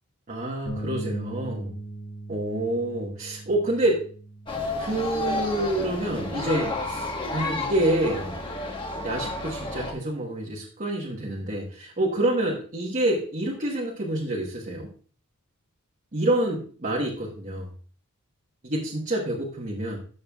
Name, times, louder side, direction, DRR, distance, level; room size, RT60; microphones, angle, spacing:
voice 1, 0.3-1.7 2.3-4.0 4.8-8.4 9.0-14.9 16.1-17.7 18.6-20.0, right 1 dB, 35° right, -3 dB, 1.3 m, -27 dB
Bass guitar, 0.7-6.9, right 1 dB, 40° left, 1.8 m, -40 dB
sound 1, 4.5-9.9, left 2 dB, 20° left, 1.3 m, -31 dB
12.5 x 6.6 x 2.3 m, 0.41 s
head